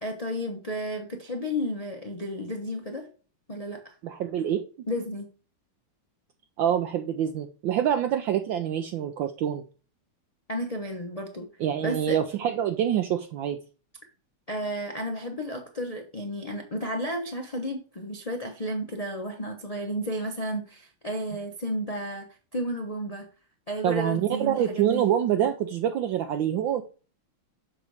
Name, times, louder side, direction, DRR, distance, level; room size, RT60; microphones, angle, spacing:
voice 1, 0.0-3.1 3.5-3.9 4.9-5.3 10.5-11.5 11.8-12.2 14.5-22.3 22.5-23.3 23.7-25.0, equal, 70° left, 3 dB, 0.3 m, -32 dB
voice 2, 4.0-4.6 6.6-9.6 11.6-13.6 23.8-26.8, right 10 dB, 70° right, 6 dB, 1.2 m, -26 dB
6.9 x 4.1 x 4.7 m, 0.36 s
omnidirectional pair, 2.4 m